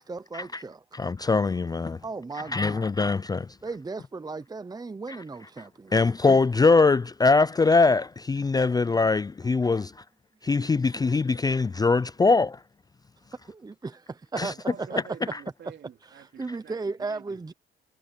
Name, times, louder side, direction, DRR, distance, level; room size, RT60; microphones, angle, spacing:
voice 1, 0.0-0.8 2.0-2.9 3.6-5.9 10.6-10.7 13.5-15.0 16.0-17.5, right 3 dB, 20° right, 0.9 m, -36 dB
voice 2, 0.9-2.0 2.5-3.5 5.1-5.2 5.9-9.9 10.4-12.6 14.4-14.5, left 4 dB, 20° left, 0.4 m, -22 dB
voice 3, 14.5-17.5, right 8 dB, 60° right, 3.5 m, -48 dB
cardioid pair, 90°, 20 cm